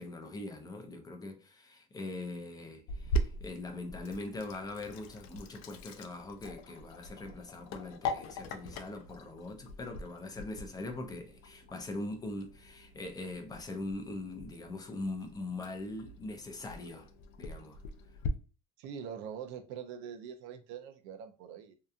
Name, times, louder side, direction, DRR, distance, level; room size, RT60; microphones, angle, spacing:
voice 1, 0.0-17.1 17.4-17.8, left 2 dB, 20° left, 0.5 m, -42 dB
Sink (filling or washing), 2.9-18.3, equal, 70° left, 0.5 m, -41 dB
voice 2, 18.8-21.7, right 8 dB, 75° right, 0.5 m, -43 dB
2.8 x 2.3 x 2.4 m
cardioid pair, 120°, 20 cm